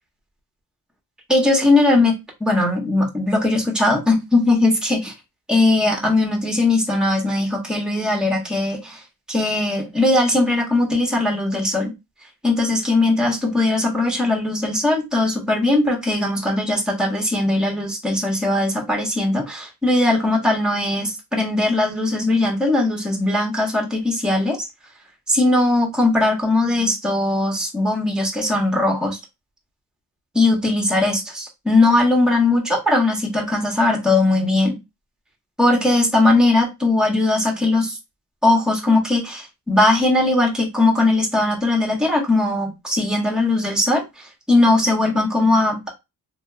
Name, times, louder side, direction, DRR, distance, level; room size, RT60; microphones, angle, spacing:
voice 1, 1.3-2.1 2.4-5.1 5.5-9.0 9.3-11.9 12.4-24.7 25.3-29.2 30.3-34.8 35.6-38.0 38.4-45.9, left 2 dB, ahead, 1.3 m, -19 dB
3.2 x 3.2 x 2.4 m
cardioid pair, 70°, 37 cm